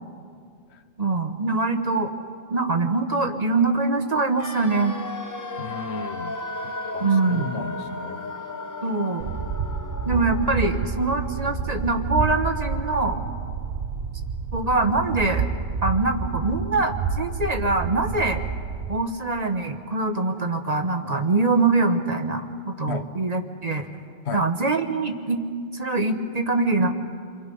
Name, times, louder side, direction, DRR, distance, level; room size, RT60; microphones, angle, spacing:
voice 1, 1.0-2.1 2.5-4.9 7.0-7.7 8.8-9.2 10.0-13.2 14.5-15.4 15.8-18.4 18.9-23.9 24.3-25.4 25.7-26.9, right 3 dB, 35° right, 4 dB, 1.3 m, -23 dB
sound 1, 4.4-14.3 14.6-14.7, left 2 dB, 20° left, 0.7 m, -36 dB
voice 2, 5.6-6.4 6.9-8.2 22.9-23.0 24.2-24.5, left 6 dB, 75° left, 11 dB, 1.1 m, -34 dB
sound 2, 9.2-19.0, right 5 dB, 55° right, 1.0 m, -29 dB
29.5 x 22.5 x 5.5 m, 2.1 s
omnidirectional pair, 1.1 m